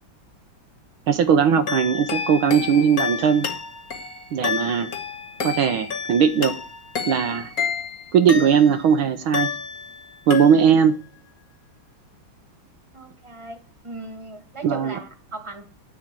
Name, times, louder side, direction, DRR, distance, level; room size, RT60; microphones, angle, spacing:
voice 1, 1.1-3.5 4.3-4.9 5.4-6.5 7.1-7.5 8.1-9.5 10.3-11.0 14.6-15.0, right 7 dB, 70° right, 1.5 m, -19 dB
sound 1, 1.7-8.9 9.3-10.0 10.3-10.9, left 6 dB, 45° left, 1.6 m, -30 dB
voice 2, 12.9-13.6 13.8-15.6, right 3 dB, 15° right, 1.5 m, -37 dB
10.0 x 7.3 x 8.2 m
omnidirectional pair, 2.4 m